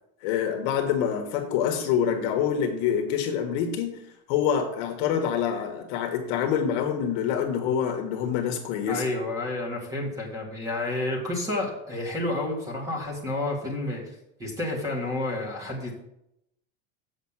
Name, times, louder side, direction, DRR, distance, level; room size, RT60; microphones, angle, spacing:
voice 1, 0.2-4.0 4.3-9.0, left 8 dB, 45° left, 4 dB, 1.3 m, -26 dB
voice 2, 8.9-14.0 14.4-15.9, left 2 dB, 10° right, 0 dB, 1.9 m, -30 dB
7.4 x 5.8 x 7.3 m, 0.82 s
supercardioid pair, 175°, 32 cm